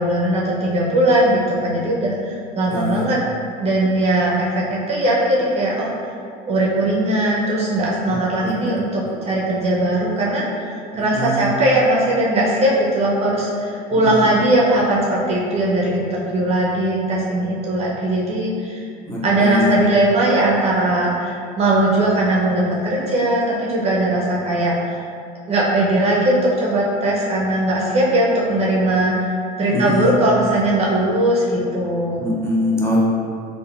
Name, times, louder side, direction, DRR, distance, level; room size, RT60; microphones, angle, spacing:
voice 1, 0.0-3.2 3.6-5.9 6.5-10.7 11.0-18.8 19.2-25.0 25.5-29.3 29.6-32.2, right 1 dB, 30° right, -4 dB, 0.4 m, -19 dB
voice 2, 2.7-3.1 8.4-8.7 10.9-11.5 14.0-14.3 19.1-19.8 29.7-30.1 32.2-33.0, left 1 dB, 15° left, -6 dB, 0.6 m, -23 dB
3.5 x 2.0 x 2.2 m, 2.4 s
supercardioid pair, 100°, 20 cm